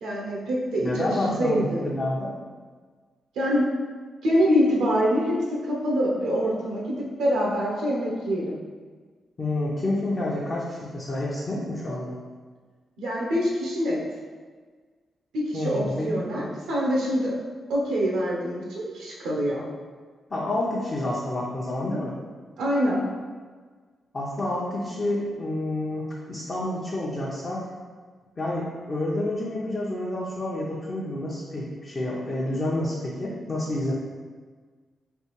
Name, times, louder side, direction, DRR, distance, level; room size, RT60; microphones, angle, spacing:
voice 1, 0.0-1.8 3.4-3.7 4.2-5.4 5.6-8.6 13.0-14.0 15.3-17.3 17.7-19.6 22.6-23.0, equal, 90° right, -3 dB, 0.6 m, -25 dB
voice 2, 0.8-2.3 9.4-12.2 15.5-16.1 16.4-16.5 20.3-22.1 24.1-27.7 28.4-33.9, left 1 dB, 45° left, -7 dB, 0.7 m, -29 dB
3.3 x 2.4 x 3.1 m, 1.5 s
supercardioid pair, 55°, 0 cm